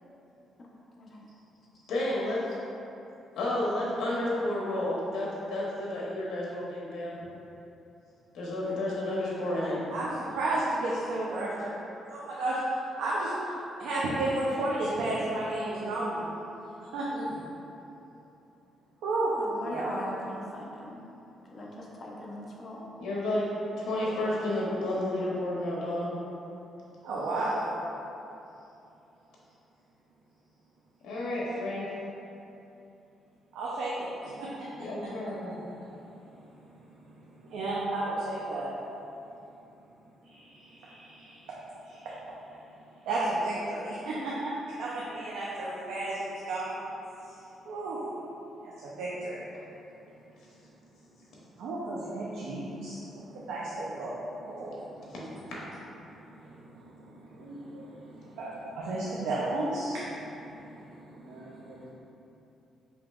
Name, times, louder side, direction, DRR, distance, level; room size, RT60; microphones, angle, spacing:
voice 1, 1.9-2.6 3.4-7.2 8.3-9.8 23.0-23.5 23.8-26.1 31.0-32.0 34.8-35.6, left 1 dB, 75° left, -5 dB, 0.8 m, -31 dB
voice 2, 9.9-11.7 12.1-12.6 13.0-13.3 13.8-16.2 16.9-17.4 19.0-19.9 27.0-27.6 33.5-34.5 34.8-35.1 35.4-35.7 37.5-38.7 40.2-41.4 41.9-42.1 43.1-44.5 44.8-46.8 47.7-48.0 48.6-49.4 51.6-55.3 56.3-57.0 57.3-61.9, right 2 dB, 85° right, -7 dB, 0.5 m, -33 dB
voice 3, 19.4-21.0 21.5-22.9, left 1 dB, 40° left, -3 dB, 0.7 m, -40 dB
5.1 x 2.9 x 2.4 m, 2.9 s
cardioid pair, 90°, 0 cm